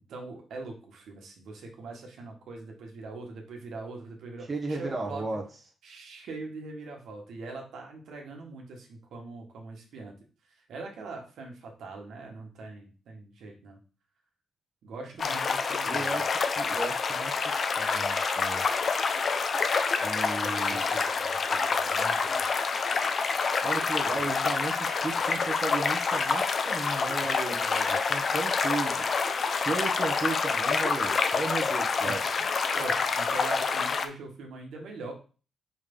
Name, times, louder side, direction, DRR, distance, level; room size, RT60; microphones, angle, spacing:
voice 1, 0.1-5.2 5.8-10.1 10.7-13.8 14.8-16.2 20.4-22.5 24.1-24.3 32.0-35.2, right 3 dB, 75° right, 1 dB, 1.7 m, -42 dB
voice 2, 4.5-5.4 15.3-15.6 15.8-18.6 20.0-20.9 23.6-29.0 29.5-32.2, right 3 dB, 30° right, -1 dB, 1.4 m, -35 dB
sound 1, 15.2-34.1, left 5 dB, 45° left, 0.7 m, -27 dB
5.3 x 3.5 x 5.5 m, 0.36 s
cardioid pair, 100°, 0 cm